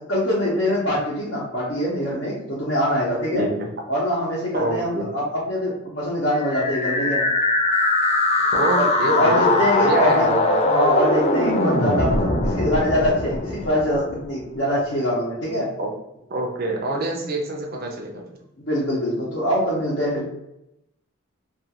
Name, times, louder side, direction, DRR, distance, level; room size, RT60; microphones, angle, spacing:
voice 1, 0.0-3.5 3.9-7.3 8.7-10.3 10.6-15.7 18.6-20.3, equal, 60° left, -8 dB, 0.7 m, -23 dB
voice 2, 3.3-3.7 4.5-5.1 8.5-10.6 15.8-15.9 16.3-18.2, right 2 dB, 45° right, 0 dB, 0.5 m, -25 dB
sound 1, 6.4-14.3, left 2 dB, 30° left, 0.3 m, -21 dB
2.4 x 2.3 x 2.9 m, 0.84 s
head